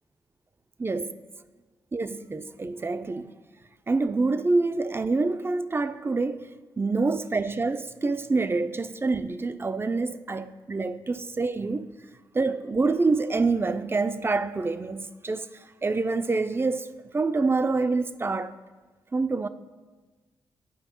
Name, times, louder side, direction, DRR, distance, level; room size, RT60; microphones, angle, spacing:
voice 1, 0.8-1.1 1.9-3.3 3.9-6.5 6.8-11.9 12.3-15.5 15.8-18.5 19.1-19.5, right 3 dB, 25° right, 0.4 m, -26 dB
11.0 x 4.7 x 3.0 m
supercardioid pair, 50°, 9 cm